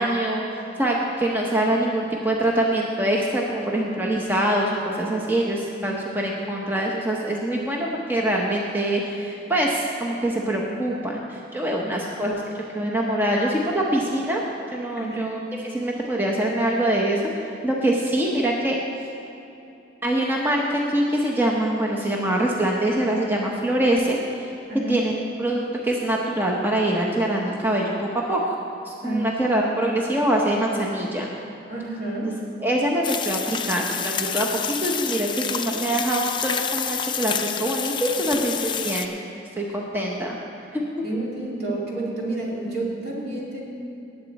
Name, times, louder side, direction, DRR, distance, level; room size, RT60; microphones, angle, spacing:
voice 1, 0.0-14.4 14.7-15.4 15.6-18.8 20.0-24.5 24.9-25.1 25.4-28.6 28.9-31.3 32.6-39.2 39.6-40.4 40.7-41.0, right 1 dB, 10° right, -2 dB, 0.8 m, -24 dB
voice 2, 5.8-6.2 15.0-15.2 24.7-25.0 29.0-29.3 29.8-29.9 31.7-32.4 38.2-38.5 41.0-43.6, right 2 dB, 60° right, -4 dB, 2.7 m, -30 dB
sound 1, 33.0-39.1, left 7 dB, 25° left, 0.5 m, -28 dB
18.5 x 8.1 x 4.1 m, 2.9 s
head